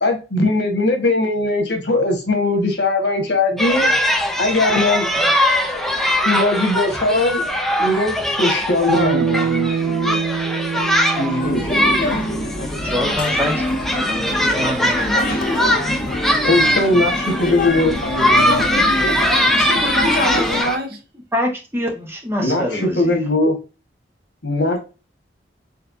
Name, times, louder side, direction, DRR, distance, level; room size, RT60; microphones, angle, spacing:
voice 1, 0.0-3.9 4.4-5.1 6.2-7.4 7.8-10.2 11.2-12.2 16.4-18.9 22.4-23.5 24.4-24.8, left 2 dB, 75° left, 1.5 m, -20 dB
sound 1, 3.6-20.8, equal, ahead, 0.5 m, -21 dB
Bass guitar, 8.9-13.3, right 6 dB, 75° right, 0.5 m, -25 dB
sound 2, 11.4-20.6, left 2 dB, 55° left, 0.6 m, -25 dB
voice 2, 12.8-13.5 13.8-15.5 21.3-23.1, left 1 dB, 15° right, 1.2 m, -25 dB
voice 3, 19.6-21.0, right 1 dB, 60° right, 0.9 m, -25 dB
4.4 x 3.5 x 2.7 m
head